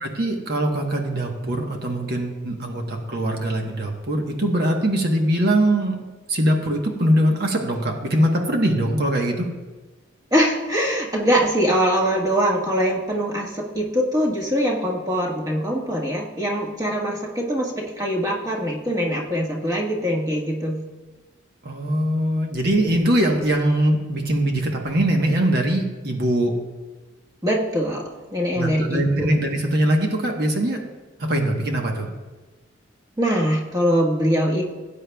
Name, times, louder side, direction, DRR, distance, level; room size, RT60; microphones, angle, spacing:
voice 1, 0.0-6.0 6.3-9.5 21.6-26.5 28.6-30.8 31.2-32.1, right 1 dB, 55° right, 2 dB, 1.1 m, -22 dB
voice 2, 10.3-20.8 27.4-29.3 33.2-34.6, equal, 20° right, -2 dB, 1.4 m, -23 dB
17.5 x 8.5 x 2.3 m, 1.3 s
head